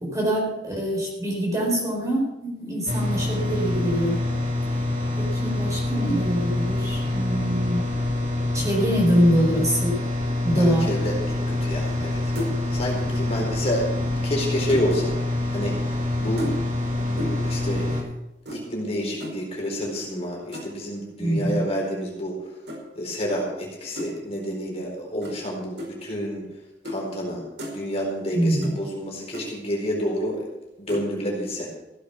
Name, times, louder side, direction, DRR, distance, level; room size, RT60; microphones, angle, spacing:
voice 1, 0.0-4.2 5.2-7.9 8.5-10.0 10.4-10.9 21.2-21.6 28.3-28.8, equal, 20° right, -2 dB, 4.5 m, -24 dB
sound 1, 2.9-18.0, left 2 dB, 45° right, 2.6 m, -26 dB
voice 2, 10.5-12.3 12.7-15.1 15.5-16.7 17.1-18.1 18.5-22.3 23.0-26.4 26.8-27.4 27.7-30.4 30.8-31.7, equal, 35° left, -2 dB, 4.2 m, -29 dB
sound 2, 11.9-12.1 12.4-12.7 13.9-15.0 16.4-16.8 17.2-17.5 18.5-18.6 19.2-19.4 20.5-20.9 22.7-22.8 24.0-24.1 25.2-25.4 25.8-25.9 26.8-27.0 27.3-27.8 28.6-28.7 29.0-29.1 29.3-29.5 30.9-31.1, equal, 70° right, 5.0 m, -33 dB
16.0 x 8.4 x 7.0 m, 0.98 s
head